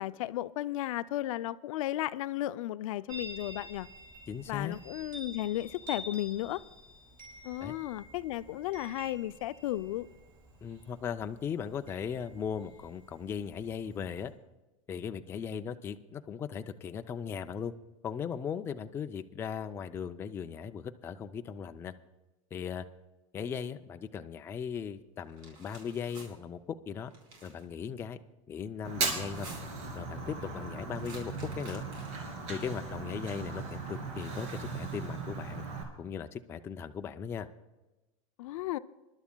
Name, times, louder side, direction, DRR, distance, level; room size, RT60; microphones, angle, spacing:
voice 1, 0.0-3.9 4.5-6.6 7.4-10.1 38.4-38.8, left 14 dB, 75° left, 15 dB, 0.4 m, -34 dB
Chime, 3.1-14.3, equal, 25° right, 4.9 m, -49 dB
voice 2, 4.3-4.8 7.6-7.8 10.6-14.3 14.9-17.7 18.0-21.9 22.5-22.9 23.3-26.6 26.9-27.1 27.4-28.2 28.5-29.5 29.9-31.8 32.5-35.6 36.0-37.5, left 7 dB, 15° left, 7 dB, 0.3 m, -38 dB
sound 1, 25.3-26.3 27.1-27.6 29.2-29.9 30.9-32.3, right 2 dB, 80° right, 4.5 m, -51 dB
Fire, 28.8-35.8, right 4 dB, 55° right, 2.7 m, -37 dB
26.0 x 11.5 x 2.2 m, 1.1 s
supercardioid pair, 150°, 17 cm